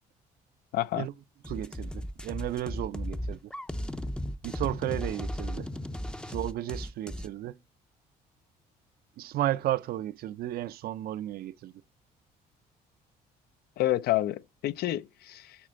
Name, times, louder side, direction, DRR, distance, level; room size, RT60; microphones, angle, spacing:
voice 1, 0.7-1.1 13.8-15.6, left 14 dB, 65° left, 0.5 m, -29 dB
sound 1, 1.4-7.3, equal, 5° left, 0.5 m, -35 dB
voice 2, 1.5-3.5 4.4-5.7 6.3-7.6 9.2-11.7, right 14 dB, 65° right, 0.5 m, -33 dB
8.8 x 4.2 x 6.3 m
cardioid pair, 110°, 17 cm